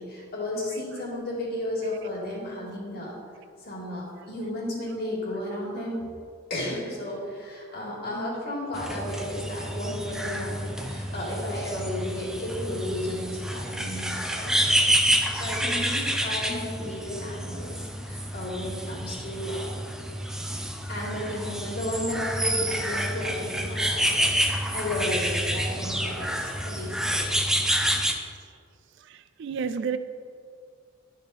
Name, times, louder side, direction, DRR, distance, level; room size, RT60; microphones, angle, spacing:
voice 1, 0.0-3.1 3.6-6.1 6.5-14.8 15.3-19.7 20.9-27.3, left 1 dB, 55° left, 2.1 m, -33 dB
sound 1, 8.7-28.1, equal, 5° right, 0.5 m, -28 dB
voice 2, 20.4-20.9 29.0-30.0, right 6 dB, 65° right, 0.4 m, -35 dB
10.5 x 5.1 x 4.1 m
head